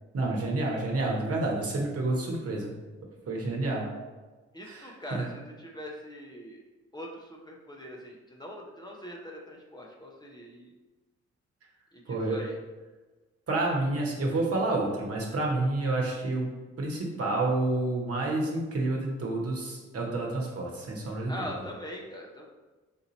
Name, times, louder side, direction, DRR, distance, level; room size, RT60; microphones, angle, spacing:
voice 1, 0.1-2.7 3.3-3.8 4.6-5.2 12.1-12.4 13.5-16.5 16.8-21.3, right 2 dB, 50° right, -1 dB, 1.2 m, -29 dB
voice 2, 4.5-6.6 6.9-10.7 11.9-12.6 21.3-22.5, equal, 15° left, -1 dB, 0.8 m, -42 dB
4.4 x 2.7 x 4.0 m, 1.2 s
hypercardioid pair, 45°, 31 cm